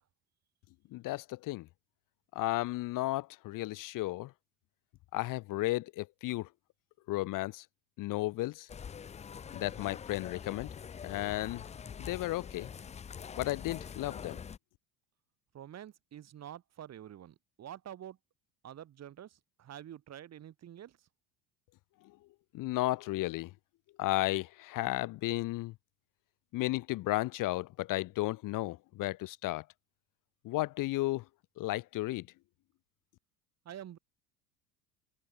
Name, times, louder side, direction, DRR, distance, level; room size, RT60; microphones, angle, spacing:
voice 1, 0.9-1.7 2.3-4.3 5.1-6.5 7.1-7.7 8.0-8.7 9.5-10.7 11.0-11.6 12.0-12.7 13.4-14.4 22.5-23.5 24.0-25.7 26.5-29.6 30.4-31.2 31.6-32.3, left 18 dB, 45° left, 0.8 m, -33 dB
sound 1, 8.7-14.6, left 7 dB, 15° left, 0.5 m, -45 dB
voice 2, 15.5-18.2 18.6-19.3 19.6-20.9 33.6-34.0, right 10 dB, 35° right, 1.4 m, -47 dB
hypercardioid pair, 70°, 46 cm